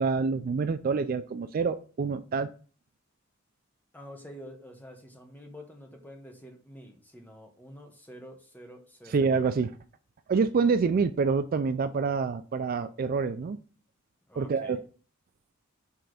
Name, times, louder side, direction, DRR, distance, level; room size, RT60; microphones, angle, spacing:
voice 1, 0.0-2.5 9.1-9.7 10.3-13.6 14.4-14.8, right 5 dB, 45° right, 11 dB, 0.3 m, -27 dB
voice 2, 3.9-9.2 14.3-14.8, equal, 10° left, 3 dB, 1.1 m, -48 dB
6.0 x 3.4 x 4.9 m, 0.39 s
head